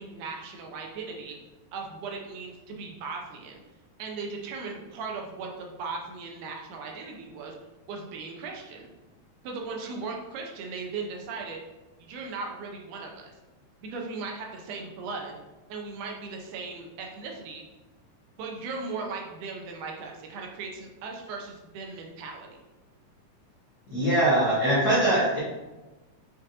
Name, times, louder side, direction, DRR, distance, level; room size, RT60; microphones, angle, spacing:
voice 1, 0.0-1.4 1.7-3.6 4.0-7.5 7.9-8.9 9.4-11.6 12.0-13.3 13.8-15.4 15.7-17.6 18.4-22.6, right 4 dB, 75° right, 1 dB, 2.0 m, -37 dB
voice 2, 23.9-25.4, right 1 dB, 65° left, -11 dB, 1.1 m, -22 dB
7.3 x 2.6 x 2.7 m, 1.1 s
omnidirectional pair, 3.9 m